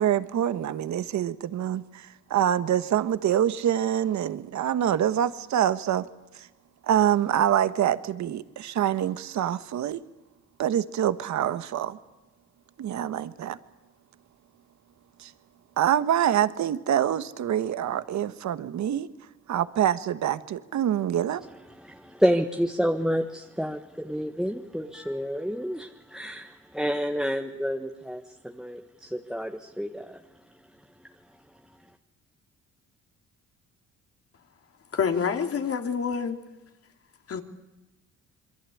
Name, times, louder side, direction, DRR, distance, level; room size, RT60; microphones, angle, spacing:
voice 1, 0.0-6.1 6.3-6.5 6.8-10.0 10.6-12.0 12.8-13.6 15.2-15.3 15.8-19.1 19.5-21.4, right 10 dB, 65° right, 13 dB, 1.4 m, -25 dB
voice 2, 21.7-30.2, equal, ahead, 3 dB, 1.5 m, -29 dB
voice 3, 34.9-36.4 37.3-37.4, left 6 dB, 50° left, 5 dB, 2.8 m, -27 dB
26.5 x 23.0 x 8.6 m, 1.0 s
cardioid pair, 90°, 30 cm